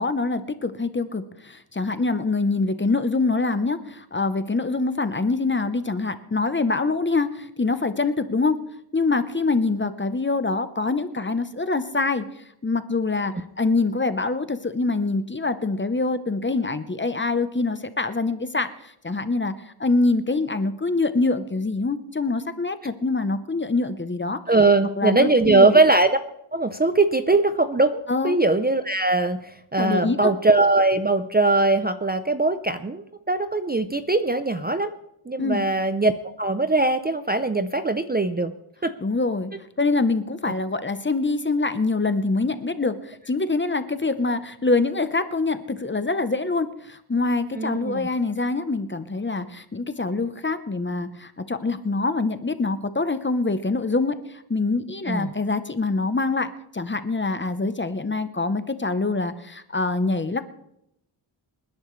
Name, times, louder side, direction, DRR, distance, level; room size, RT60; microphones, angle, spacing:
voice 1, 0.0-8.6 8.9-12.3 12.6-19.5 19.8-24.4 25.0-25.8 28.1-28.4 29.8-30.3 35.4-35.6 39.0-39.5 39.8-60.4, left 3 dB, 25° left, 11 dB, 0.8 m, -25 dB
voice 2, 24.5-26.2 26.5-29.4 29.7-34.9 35.3-36.1 36.4-38.5 38.8-38.9 47.6-48.1 55.1-55.3, right 2 dB, 20° right, 10 dB, 0.6 m, -21 dB
27.0 x 10.5 x 3.2 m, 0.78 s
wide cardioid pair, 105°, 49 cm